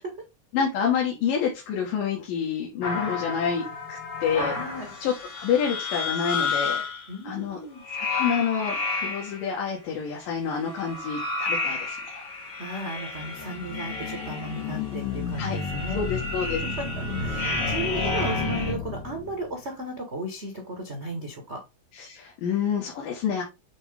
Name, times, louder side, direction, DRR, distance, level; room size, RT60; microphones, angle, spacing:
voice 1, 0.5-4.5 5.0-6.8 7.2-7.6 8.0-12.3 15.4-15.6 15.9-16.6 21.9-23.4, left 7 dB, 80° left, -1 dB, 3.1 m, -28 dB
sound 1, 2.8-7.1 7.8-9.5 10.6-18.7, left 4 dB, 45° left, 2.7 m, -31 dB
voice 2, 4.5-4.9 7.1-7.8 12.3-16.0 16.6-21.6, right 1 dB, 75° right, 2 dB, 0.6 m, -35 dB
sound 2, 13.2-19.5, left 4 dB, 60° left, 3.0 m, -32 dB
7.9 x 3.8 x 3.5 m, 0.24 s
omnidirectional pair, 3.8 m